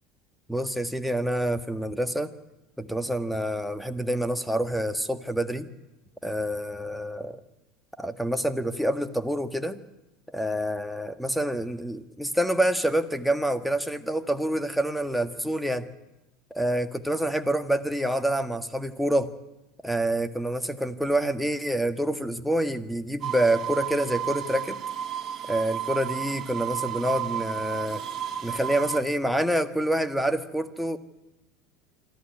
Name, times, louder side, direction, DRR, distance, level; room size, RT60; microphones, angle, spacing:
voice 1, 0.5-2.3 2.8-5.7 6.2-7.4 8.0-9.8 10.3-15.9 16.5-19.3 19.8-24.8 25.5-28.0 28.4-31.0, right 1 dB, ahead, 8 dB, 1.6 m, -27 dB
sound 1, 23.2-29.0, right 10 dB, 40° right, 2.6 m, -32 dB
26.0 x 13.0 x 9.8 m, 1.0 s
hypercardioid pair, 80°, 0 cm